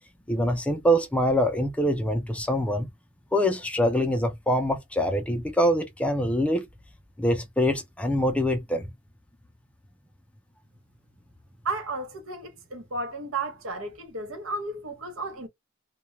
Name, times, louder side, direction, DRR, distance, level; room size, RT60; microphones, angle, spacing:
voice 1, 0.3-2.9 3.3-6.7 7.2-8.9, equal, 5° left, 0.4 m, -24 dB
voice 2, 11.6-15.5, right 3 dB, 85° right, 0.7 m, -33 dB
2.2 x 2.2 x 2.9 m
head